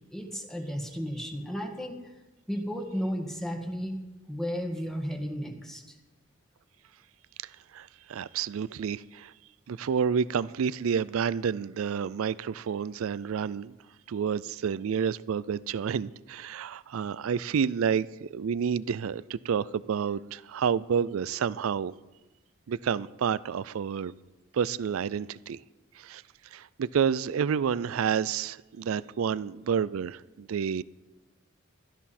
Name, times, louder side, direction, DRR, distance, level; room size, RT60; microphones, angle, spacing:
voice 1, 0.0-2.1 2.5-4.0 4.3-6.0, equal, ahead, 1 dB, 1.6 m, -34 dB
voice 2, 7.4-9.3 9.7-13.8 14.1-21.9 22.7-24.1 24.5-25.6 26.0-26.2 26.5-30.8, right 7 dB, 85° right, 19 dB, 0.4 m, -29 dB
16.5 x 13.0 x 4.3 m, 1.1 s
head